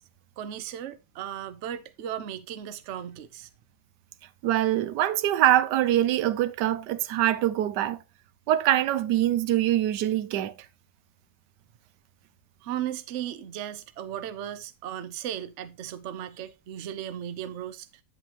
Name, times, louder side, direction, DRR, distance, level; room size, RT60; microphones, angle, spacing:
voice 1, 0.4-3.5 12.6-18.0, right 10 dB, 55° right, 0.9 m, -36 dB
voice 2, 4.4-8.0 8.5-10.5, right 12 dB, 85° right, 1.3 m, -24 dB
9.3 x 7.8 x 2.9 m
omnidirectional pair, 1.8 m